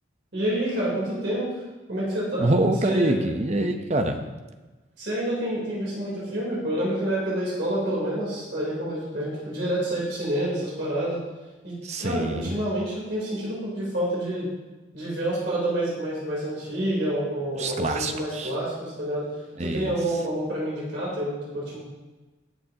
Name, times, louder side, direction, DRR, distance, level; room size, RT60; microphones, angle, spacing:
voice 1, 0.3-1.5 1.9-2.5 2.8-3.3 5.0-11.2 11.6-14.5 14.9-19.3 19.6-21.8, right 1 dB, 65° right, -6 dB, 3.6 m, -28 dB
voice 2, 2.4-4.2 11.8-12.6 17.6-18.5 19.6-19.9, right 1 dB, 35° right, 6 dB, 0.8 m, -25 dB
19.5 x 6.9 x 2.9 m, 1.2 s
head